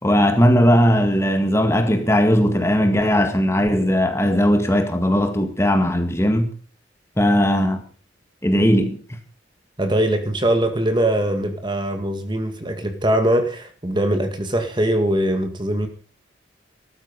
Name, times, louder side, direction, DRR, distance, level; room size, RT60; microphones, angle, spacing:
voice 1, 0.0-6.5 7.2-7.8 8.4-9.0, equal, 15° left, 1.9 m, -18 dB
voice 2, 9.8-15.9, right 1 dB, 25° right, 2.1 m, -21 dB
14.5 x 13.0 x 5.4 m
head